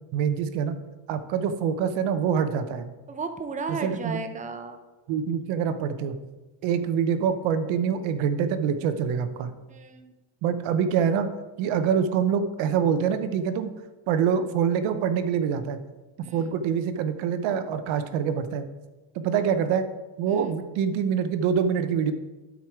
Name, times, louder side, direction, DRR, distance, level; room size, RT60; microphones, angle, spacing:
voice 1, 0.1-0.8 1.1-2.9 3.7-4.2 5.1-6.2 6.6-9.5 10.4-11.3 11.6-13.7 14.1-15.8 16.3-18.6 19.1-19.9 20.2-22.1, right 7 dB, 85° right, 10 dB, 0.9 m, -25 dB
voice 2, 3.1-4.8 9.7-10.1 16.2-16.4, right 4 dB, 15° right, 7 dB, 0.7 m, -34 dB
12.5 x 4.8 x 4.6 m, 1.1 s
cardioid pair, 125°, 45 cm